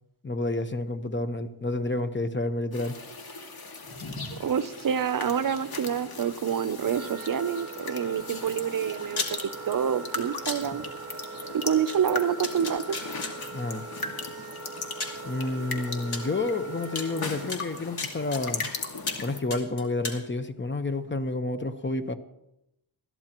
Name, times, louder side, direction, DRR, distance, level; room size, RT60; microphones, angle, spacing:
voice 1, 0.2-3.0 13.5-13.8 15.2-18.7 19.2-22.1, left 2 dB, 30° left, 9 dB, 1.0 m, -30 dB
sound 1, 2.7-19.4, left 3 dB, 70° left, 2.1 m, -38 dB
voice 2, 4.3-9.4 9.7-10.8 11.5-13.0, right 8 dB, 60° right, 15 dB, 0.6 m, -27 dB
Wind instrument woodwind instrument, 6.9-17.5, right 5 dB, 45° right, 2.3 m, -42 dB
sound 2, 9.1-9.3 10.4-10.6 11.9-12.0 12.4-13.3 14.4-14.5 15.0-15.2 16.1-16.2 17.0-17.1 17.5-18.7 19.1-19.2 19.5-20.2, left 3 dB, 85° left, 2.1 m, -33 dB
21.0 x 14.0 x 3.0 m, 0.84 s
wide cardioid pair, 95°, 38 cm